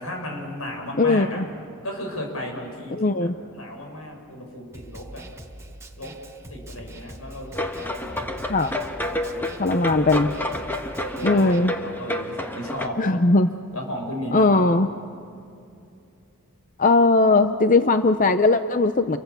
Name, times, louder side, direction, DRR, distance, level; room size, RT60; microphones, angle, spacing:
voice 1, 0.0-1.4 1.8-5.2 6.0-6.1 6.5-8.5 8.8-10.6 11.0-13.0 13.7-14.6, left 1 dB, 90° left, 1 dB, 6.9 m, -35 dB
voice 2, 1.0-1.4 2.9-3.3 8.5-8.7 9.6-10.3 11.2-11.7 13.0-13.5 14.3-14.9 16.8-19.2, left 3 dB, 40° left, 10 dB, 0.6 m, -19 dB
Snare drum, 4.7-11.6, right 1 dB, 15° right, 1.5 m, -42 dB
sound 1, 7.5-12.9, left 1 dB, 10° left, 1.4 m, -30 dB
29.5 x 24.0 x 6.9 m, 2.5 s
head